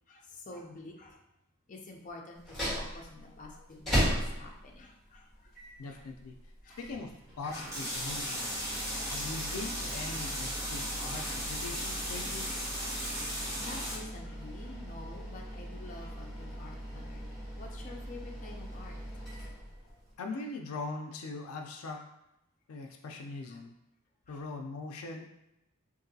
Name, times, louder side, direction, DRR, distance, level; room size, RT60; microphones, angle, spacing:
voice 1, 0.1-1.2 1.7-5.5 5.9-6.0 6.6-6.8 13.2-19.0 19.9-20.0 23.5-23.6 24.3-24.4, left 2 dB, 35° left, 0 dB, 0.5 m, -49 dB
sound 1, 2.4-20.1, equal, ahead, 1.4 m, -39 dB
voice 2, 5.8-6.3 6.8-8.6 9.1-12.5 20.2-22.0 22.7-23.7 24.3-25.3, left 3 dB, 90° left, 4 dB, 0.4 m, -41 dB
sound 2, 7.4-14.0, equal, 15° right, 0.9 m, -36 dB
3.7 x 2.6 x 2.7 m, 0.88 s
head